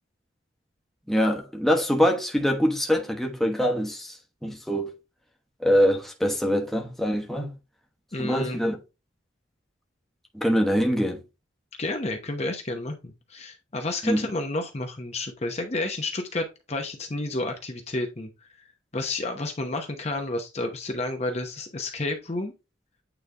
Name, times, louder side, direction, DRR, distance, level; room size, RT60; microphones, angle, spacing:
voice 1, 1.1-4.9 5.6-7.5 8.2-8.8 10.3-11.2 14.0-14.2, equal, ahead, 1.1 m, -24 dB
voice 2, 8.1-8.6 11.8-18.7 18.9-22.5, left 2 dB, 35° left, 0.8 m, -31 dB
9.0 x 3.3 x 3.4 m
head